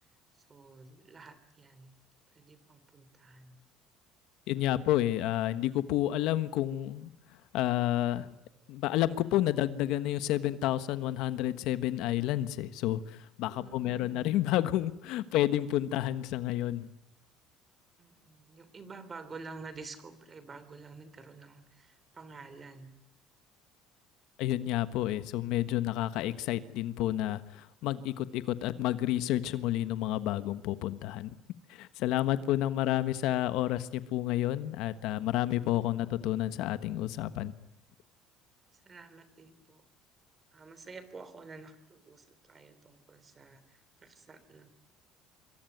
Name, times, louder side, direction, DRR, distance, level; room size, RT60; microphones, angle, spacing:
voice 1, 0.5-1.9 2.3-3.6 13.6-14.3 18.0-23.0 38.8-39.8 40.5-44.7, right 4 dB, 25° right, 13 dB, 3.4 m, -49 dB
voice 2, 4.5-7.1 7.5-8.3 8.7-16.9 24.4-31.3 31.7-37.5, left 13 dB, 70° left, 12 dB, 1.3 m, -30 dB
26.5 x 23.5 x 9.4 m, 0.74 s
cardioid pair, 150°, 0 cm